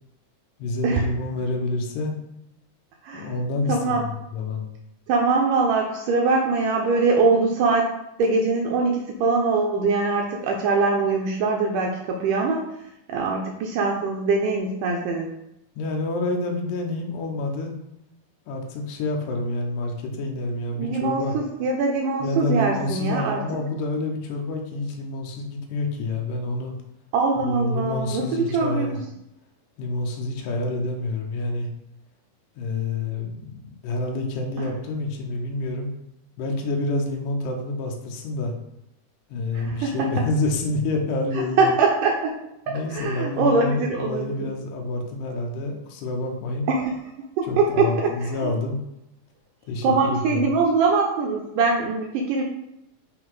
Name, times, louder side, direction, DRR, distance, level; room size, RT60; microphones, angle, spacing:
voice 1, 0.6-2.1 3.1-4.7 15.8-17.7 18.5-21.4 22.2-26.7 27.4-29.0 29.8-31.7 32.6-35.9 36.4-38.5 39.3-41.7 42.7-46.7 47.4-48.8 49.7-50.6, left 2 dB, 75° left, 1 dB, 2.2 m, -28 dB
voice 2, 3.7-4.1 5.1-7.9 8.2-12.6 13.1-15.3 20.8-23.4 27.1-28.9 39.5-40.1 41.6-42.3 42.7-44.5 46.7-46.9 47.4-48.5 49.8-52.4, right 4 dB, 80° right, 1 dB, 1.9 m, -22 dB
5.6 x 3.9 x 4.6 m, 0.85 s
omnidirectional pair, 4.3 m